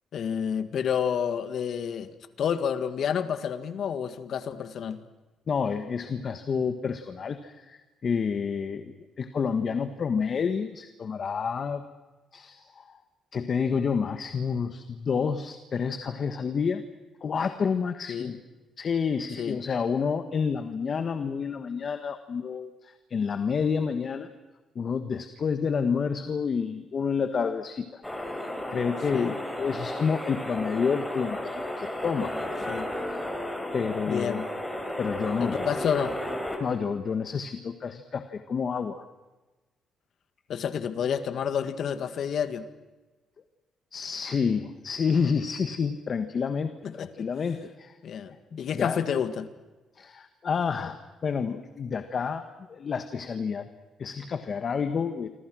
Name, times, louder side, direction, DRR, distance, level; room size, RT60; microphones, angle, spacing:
voice 1, 0.1-2.1 2.4-5.0 18.1-18.3 19.4-19.6 29.1-29.3 32.7-32.9 34.1-34.5 35.4-36.2 40.5-42.7 46.8-47.3 48.0-49.5, left 8 dB, 65° left, 10 dB, 1.8 m, -29 dB
voice 2, 5.5-11.8 12.3-13.0 13.3-16.8 17.2-18.4 18.8-24.3 24.7-28.0 28.7-32.7 33.7-34.5 35.0-35.8 36.6-39.0 43.9-47.9 48.5-49.0 50.0-53.7 54.0-55.3, left 6 dB, 50° left, 9 dB, 1.4 m, -29 dB
sound 1, 28.0-36.6, left 1 dB, 10° left, 5.2 m, -33 dB
27.5 x 26.0 x 6.3 m, 1.2 s
cardioid pair, 90°, 0 cm